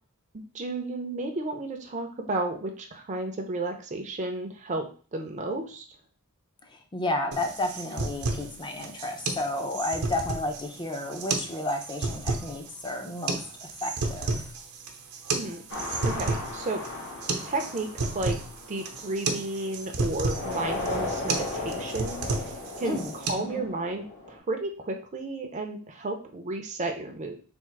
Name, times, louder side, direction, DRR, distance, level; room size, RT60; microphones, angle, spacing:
voice 1, 0.5-5.8 15.3-16.8 17.4-18.4 18.7-22.5 22.8-27.4, right 2 dB, 35° right, 3 dB, 0.5 m, -33 dB
voice 2, 6.7-14.3 22.8-23.1 23.4-23.6, left 2 dB, 20° left, 4 dB, 0.6 m, -32 dB
sound 1, 7.3-23.3, right 3 dB, 80° right, 0.8 m, -32 dB
sound 2, 15.7-19.7 20.2-24.4, left 2 dB, 55° left, 1.2 m, -36 dB
3.6 x 2.5 x 4.6 m, 0.40 s
head